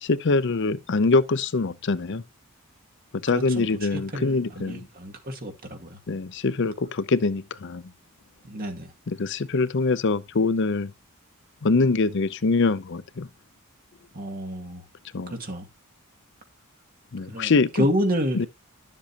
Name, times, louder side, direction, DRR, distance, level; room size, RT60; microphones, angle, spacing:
voice 1, 0.0-2.2 3.2-4.9 6.1-7.8 9.1-10.9 11.6-13.3 15.1-15.3 17.1-17.9 18.3-18.5, left 3 dB, 55° left, 0.6 m, -24 dB
voice 2, 3.3-6.0 8.4-8.9 14.1-14.8 15.3-15.7 17.3-17.5 17.8-18.5, equal, 40° right, 2.1 m, -29 dB
11.5 x 7.5 x 2.8 m
head